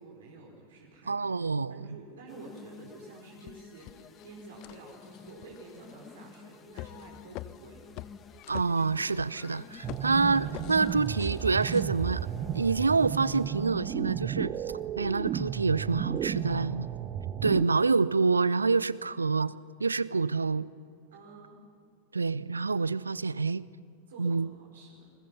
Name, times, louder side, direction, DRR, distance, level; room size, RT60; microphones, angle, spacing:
voice 1, 0.0-1.3 1.7-8.0 16.3-16.7 21.1-21.6 24.1-25.1, right 3 dB, 60° right, -1 dB, 4.6 m, -50 dB
voice 2, 1.1-1.9 8.5-12.3 12.5-14.5 15.0-16.9 17.4-19.5 19.8-20.7 22.1-23.6 24.2-24.5, right 4 dB, 75° right, 20 dB, 0.5 m, -27 dB
sound 1, 2.3-13.8, left 6 dB, 20° left, 1.3 m, -52 dB
sound 2, 2.6-2.7 3.2-11.8, left 16 dB, 40° left, 0.6 m, -47 dB
sound 3, 9.8-17.7, right 10 dB, 30° right, 0.7 m, -33 dB
28.0 x 21.0 x 5.7 m, 2.4 s
figure-of-eight pair, 90°, 0 cm